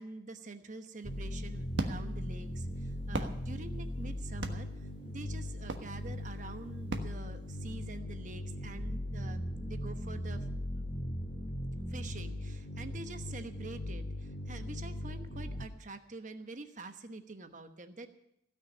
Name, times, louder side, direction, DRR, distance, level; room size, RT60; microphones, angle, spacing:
voice 1, 0.0-4.7 5.0-10.5 10.7-10.9 11.9-18.1, right 3 dB, 45° right, 8 dB, 1.1 m, -46 dB
sound 1, 1.0-15.7, left 1 dB, 50° left, 1.8 m, -39 dB
sound 2, 1.0-8.0, right 2 dB, 90° right, 1.4 m, -41 dB
16.0 x 6.3 x 9.8 m, 0.80 s
head